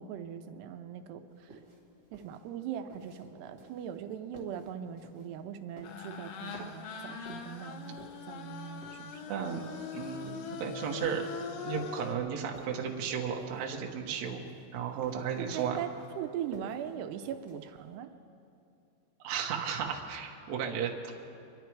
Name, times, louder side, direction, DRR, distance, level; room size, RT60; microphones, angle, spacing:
voice 1, 0.0-1.6 2.1-9.2 15.4-18.1, right 9 dB, 80° right, 7 dB, 2.7 m, -40 dB
sound 1, 1.3-17.9, right 2 dB, 35° right, 2.0 m, -54 dB
sound 2, 5.8-12.1, left 6 dB, 75° left, 2.9 m, -42 dB
voice 2, 9.3-9.7 9.9-11.3 11.6-14.4 14.7-15.8 19.2-21.1, right 7 dB, 65° right, 1 dB, 1.7 m, -34 dB
25.5 x 11.5 x 4.6 m, 2.5 s
omnidirectional pair, 5.0 m